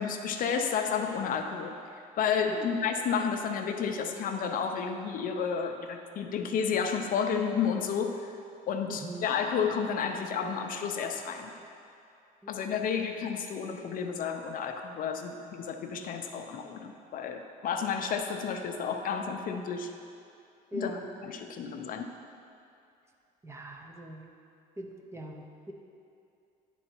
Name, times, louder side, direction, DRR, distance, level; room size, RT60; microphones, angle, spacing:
voice 1, 0.0-1.7 2.2-8.2 8.7-11.5 12.5-19.9 20.7-22.1, left 6 dB, 55° left, 5 dB, 0.5 m, -31 dB
voice 2, 8.9-9.2 12.4-13.0 20.7-21.1 23.4-24.2 24.8-25.7, right 1 dB, 15° right, 2 dB, 0.6 m, -41 dB
9.0 x 3.9 x 4.4 m, 2.5 s
cardioid pair, 110°, 17 cm